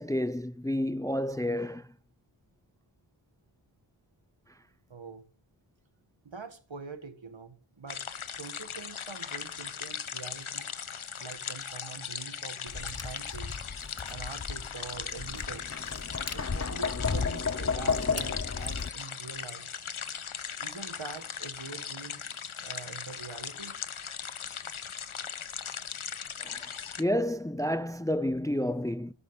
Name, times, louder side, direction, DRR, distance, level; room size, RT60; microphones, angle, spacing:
voice 1, 0.0-1.9 26.4-26.6 27.0-29.1, left 1 dB, 5° left, 0.5 m, -30 dB
voice 2, 4.9-5.3 6.2-8.0 8.4-10.7 11.2-13.5 14.1-15.7 16.3-19.7 20.6-23.8, right 5 dB, 65° right, 2.1 m, -44 dB
sound 1, 7.9-27.0, left 7 dB, 75° left, 1.1 m, -39 dB
Tap, 12.7-18.9, left 5 dB, 30° left, 1.0 m, -33 dB
13.5 x 10.0 x 5.8 m
wide cardioid pair, 50°, 49 cm